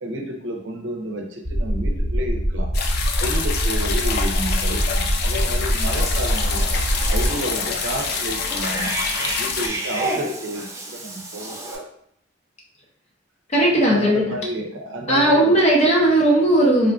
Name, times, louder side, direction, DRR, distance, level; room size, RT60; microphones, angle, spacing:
voice 1, 0.0-2.7 3.2-6.7 7.1-9.0 9.4-11.8 13.9-15.5, equal, 75° right, 2 dB, 0.6 m, -31 dB
sound 1, 1.4-7.3, equal, 45° right, 0.8 m, -23 dB
sound 2, 2.7-9.7, left 5 dB, 55° left, 0.4 m, -26 dB
Cat / Bathtub (filling or washing), 5.8-11.8, right 2 dB, 15° right, 0.4 m, -31 dB
voice 2, 13.5-14.2 15.1-16.9, right 1 dB, 35° left, -3 dB, 0.8 m, -16 dB
3.6 x 2.4 x 2.3 m, 0.68 s
head